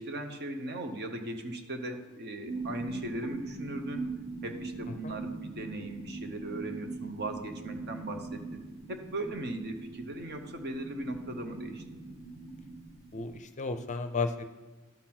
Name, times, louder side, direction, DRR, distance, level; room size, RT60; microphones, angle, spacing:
voice 1, 0.0-4.0 4.4-8.6 8.9-11.8, right 1 dB, 50° right, 6 dB, 1.0 m, -38 dB
sound 1, 2.4-13.4, right 3 dB, 30° right, 1.4 m, -42 dB
voice 2, 13.1-14.6, left 4 dB, 35° left, 9 dB, 0.5 m, -33 dB
12.0 x 4.1 x 6.0 m, 1.3 s
head